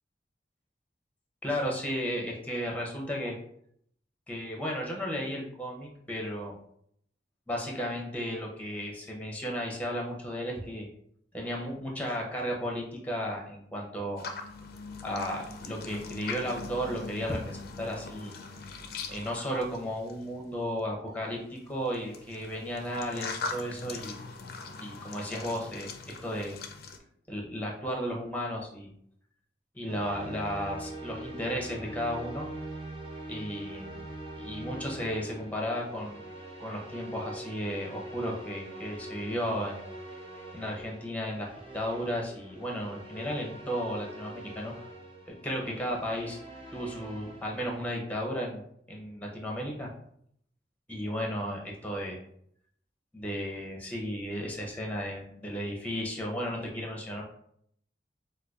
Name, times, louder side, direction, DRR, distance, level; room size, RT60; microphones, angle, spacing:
voice 1, 1.4-3.4 4.3-6.5 7.5-10.9 11.3-14.2 15.0-18.3 19.1-24.2 24.8-26.6 27.3-28.9 29.7-32.5 33.3-34.0 34.4-36.2 36.6-39.8 40.5-44.7 45.3-46.4 46.7-48.6 48.9-49.9 50.9-52.2 53.1-57.2, equal, 10° left, -1 dB, 0.6 m, -34 dB
sound 1, 14.2-20.4 21.5-27.0, left 4 dB, 60° left, 0.4 m, -41 dB
sound 2, 29.9-47.9, right 2 dB, 30° right, 0.8 m, -43 dB
4.8 x 2.2 x 2.3 m, 0.68 s
head